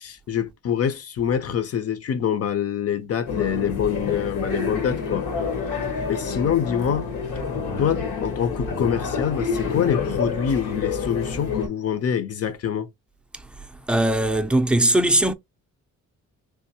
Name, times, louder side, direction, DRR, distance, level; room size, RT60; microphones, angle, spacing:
voice 1, 0.0-5.3 6.1-7.1 7.8-12.9, left 8 dB, 55° left, 0.9 m, -25 dB
sound 1, 3.3-11.7, left 5 dB, 80° left, 1.8 m, -28 dB
voice 2, 13.9-15.3, right 1 dB, 5° right, 0.5 m, -19 dB
3.6 x 2.6 x 2.9 m
cardioid pair, 90°, 30 cm